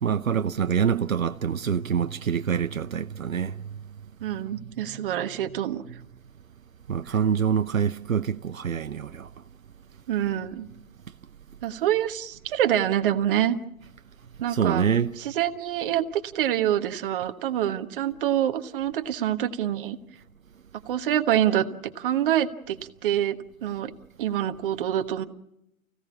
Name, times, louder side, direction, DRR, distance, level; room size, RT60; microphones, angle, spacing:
voice 1, 0.0-3.6 6.9-9.3 14.5-15.1, right 7 dB, 70° right, 0.9 m, -25 dB
voice 2, 4.2-5.8 10.1-10.7 11.6-13.6 14.4-14.9 15.2-20.0 20.9-22.8 23.0-23.9 24.2-25.3, right 11 dB, 40° right, 1.4 m, -26 dB
29.5 x 16.5 x 7.3 m
figure-of-eight pair, 120°, 41 cm